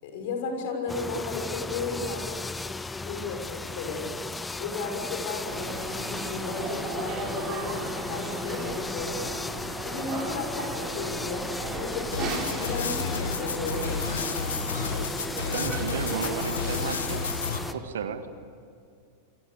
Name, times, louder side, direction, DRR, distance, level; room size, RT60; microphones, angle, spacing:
voice 1, 0.0-2.5 3.0-4.2 4.6-9.2 9.8-11.5 11.7-13.9, left 3 dB, 50° left, 4 dB, 6.4 m, -34 dB
sound 1, 0.9-17.7, left 3 dB, 10° left, 0.6 m, -35 dB
sound 2, 5.5-17.8, right 4 dB, 30° right, 4.6 m, -36 dB
sound 3, 12.1-17.6, left 5 dB, 70° left, 1.7 m, -31 dB
voice 2, 15.5-17.4 17.7-18.3, right 7 dB, 65° right, 10 dB, 1.8 m, -33 dB
28.5 x 24.0 x 6.9 m, 2.4 s
figure-of-eight pair, 90°, 0 cm